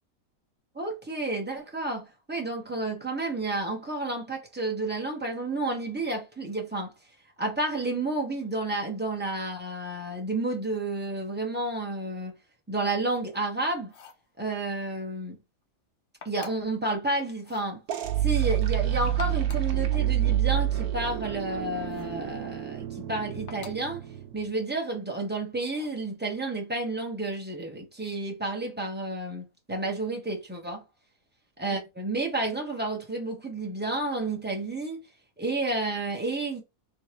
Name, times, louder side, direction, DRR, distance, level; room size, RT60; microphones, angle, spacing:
voice 1, 0.7-6.9 7.4-12.3 12.7-13.9 14.4-15.4 16.2-17.8 18.2-24.0 24.3-30.8 31.6-35.0 35.4-36.6, right 2 dB, 10° right, 0.7 m, -31 dB
sound 1, 13.8-14.3 16.2-16.8 17.4-17.7 19.0-19.8 21.9-22.2 23.5-23.9 25.6-26.0, left 6 dB, 60° left, 0.5 m, -48 dB
sound 2, 17.9-24.5, right 11 dB, 85° right, 1.1 m, -28 dB
3.3 x 3.1 x 2.9 m
omnidirectional pair, 1.5 m